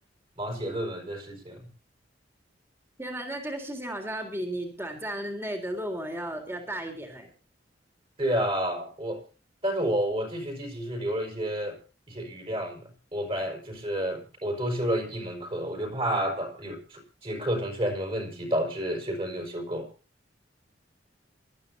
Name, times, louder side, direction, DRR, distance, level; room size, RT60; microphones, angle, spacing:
voice 1, 0.4-1.7 8.2-9.2 9.6-11.8 12.1-19.9, equal, 30° right, 3 dB, 5.3 m, -30 dB
voice 2, 3.0-7.3, right 1 dB, 15° right, 4 dB, 3.6 m, -34 dB
27.5 x 13.0 x 2.7 m, 0.35 s
head